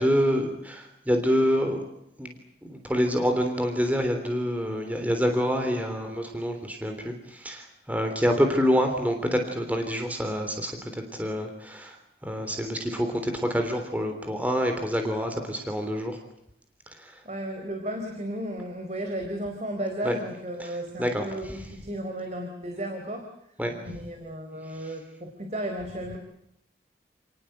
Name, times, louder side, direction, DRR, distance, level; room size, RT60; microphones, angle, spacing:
voice 1, 0.0-1.8 2.2-2.4 2.7-16.2 16.9-17.2 20.0-20.2 20.6-21.6 23.6-23.8 24.7-24.9, equal, 10° right, 5 dB, 3.4 m, -27 dB
voice 2, 17.2-23.3 23.8-26.2, right 1 dB, 40° right, 4 dB, 4.0 m, -34 dB
29.5 x 19.0 x 8.0 m, 0.82 s
head